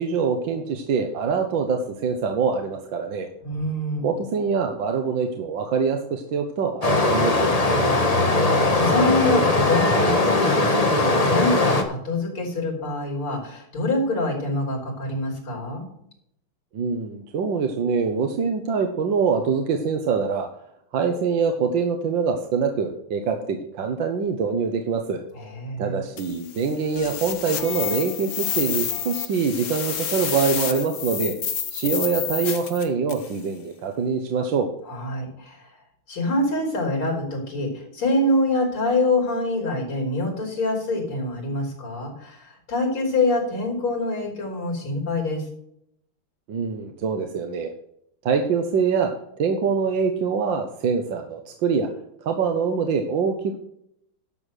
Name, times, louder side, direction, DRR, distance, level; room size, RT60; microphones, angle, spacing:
voice 1, 0.0-3.3 4.0-7.5 16.7-20.5 20.9-25.2 25.8-31.3 31.7-34.7 46.5-47.7 48.2-49.1 49.4-51.9 52.2-53.6, right 5 dB, 65° right, 5 dB, 1.7 m, -24 dB
voice 2, 3.4-4.1 7.7-15.9 25.3-26.0 34.9-35.7 36.1-45.5, left 2 dB, 80° left, -2 dB, 4.3 m, -25 dB
Stream, 6.8-11.8, left 2 dB, 20° left, 1.1 m, -20 dB
sound 1, 26.2-33.4, left 8 dB, 50° left, 1.4 m, -29 dB
11.5 x 7.1 x 6.4 m, 0.73 s
omnidirectional pair, 2.3 m